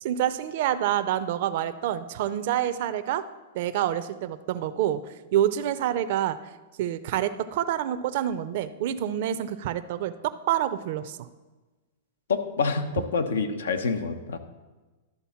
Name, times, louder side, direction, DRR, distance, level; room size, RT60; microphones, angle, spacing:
voice 1, 0.0-3.2 3.5-5.0 5.3-6.4 6.8-10.1 10.5-11.2, right 11 dB, 60° right, 11 dB, 0.5 m, -27 dB
voice 2, 12.3-14.4, left 4 dB, 85° left, 8 dB, 0.9 m, -27 dB
12.0 x 4.1 x 7.0 m, 1.2 s
hypercardioid pair, 115°, 0 cm